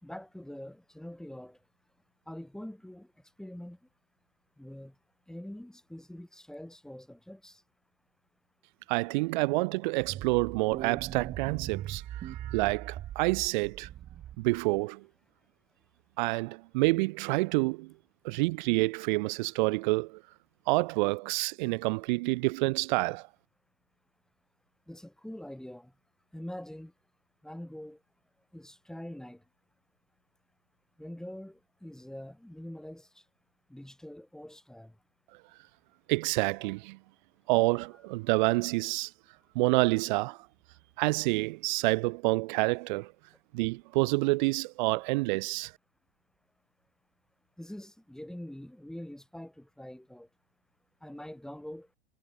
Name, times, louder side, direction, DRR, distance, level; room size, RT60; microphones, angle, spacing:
voice 1, 0.0-1.6 2.3-3.1 3.4-3.8 4.6-4.9 5.3-7.6 24.9-25.9 26.3-26.9 27.4-28.0 28.5-29.4 31.0-33.1 33.7-34.9 47.6-50.3 51.0-51.9, left 1 dB, ahead, 2.5 m, -44 dB
voice 2, 8.9-13.9 14.4-15.0 16.2-17.9 18.2-20.2 20.7-23.3 36.1-37.0 37.5-39.1 39.5-40.4 41.0-43.1 43.5-45.7, right 24 dB, 50° right, 0.8 m, -28 dB
sound 1, 10.0-14.7, right 12 dB, 30° right, 2.2 m, -40 dB
hypercardioid pair, 115°, 31 cm